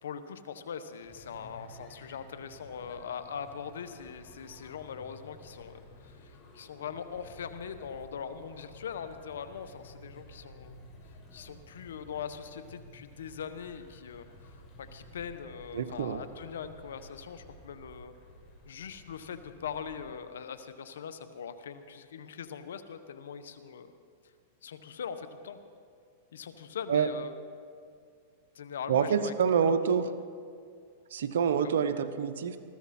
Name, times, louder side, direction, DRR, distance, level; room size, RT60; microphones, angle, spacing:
voice 1, 0.0-10.8 11.3-18.1 18.7-23.9 24.6-25.6 26.3-27.3 28.5-29.3 29.6-30.2 31.6-31.7, left 7 dB, 85° left, 11 dB, 1.0 m, -41 dB
sound 1, 1.0-20.1, left 1 dB, 35° left, 4.8 m, -53 dB
voice 2, 15.7-16.2 26.9-27.1 28.9-30.0 31.1-32.6, right 7 dB, 80° right, 11 dB, 0.9 m, -27 dB
20.0 x 15.0 x 4.3 m, 2.2 s
hypercardioid pair, 120°, 0 cm